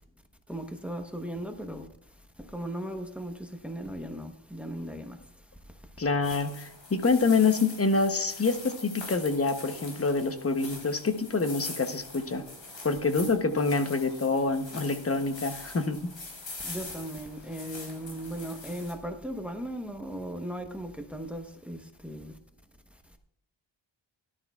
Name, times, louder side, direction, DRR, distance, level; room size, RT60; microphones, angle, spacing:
voice 1, 0.5-1.9 2.4-5.2 5.6-5.8 16.6-22.4, right 1 dB, 5° right, 1.0 m, -37 dB
voice 2, 6.0-12.4 12.8-16.1, left 4 dB, 30° left, 0.9 m, -26 dB
sound 1, 6.2-18.9, left 3 dB, 70° left, 3.8 m, -43 dB
17.5 x 11.5 x 2.4 m
wide cardioid pair, 125°, 46 cm